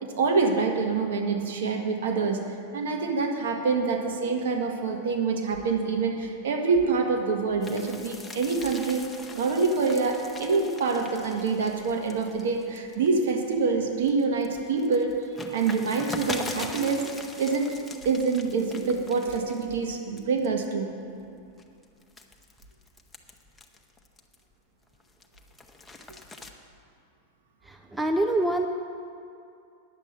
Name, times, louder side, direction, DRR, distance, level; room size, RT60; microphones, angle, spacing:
voice 1, 0.0-9.1 9.3-15.1 15.5-17.1 17.4-17.8 18.0-21.0, right 4 dB, 60° right, 3 dB, 1.3 m, -26 dB
sound 1, 7.6-13.5 14.0-19.9 20.2-20.6 21.2-24.5 24.9-26.5, left 2 dB, 10° left, 0.9 m, -42 dB
voice 2, 27.6-28.7, right 1 dB, 10° right, 4 dB, 0.5 m, -25 dB
9.9 x 7.5 x 7.9 m, 2.5 s
figure-of-eight pair, 90°, 0 cm